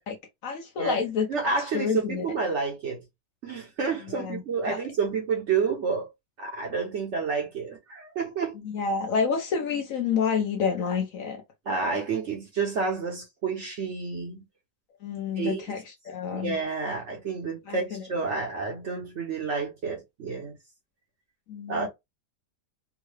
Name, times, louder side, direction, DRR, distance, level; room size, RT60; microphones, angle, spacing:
voice 1, 0.4-1.3 1.7-2.2 4.1-4.4 4.7-4.8 8.6-11.4 15.0-16.5 17.7-18.0 21.5-21.9, left 6 dB, 65° left, 0.9 m, -28 dB
voice 2, 1.3-3.0 3.4-6.1 6.4-8.6 11.7-14.4 15.4-15.6 16.3-20.6 21.7-21.9, right 5 dB, 55° right, 0.9 m, -29 dB
3.6 x 2.2 x 3.2 m
omnidirectional pair, 1.8 m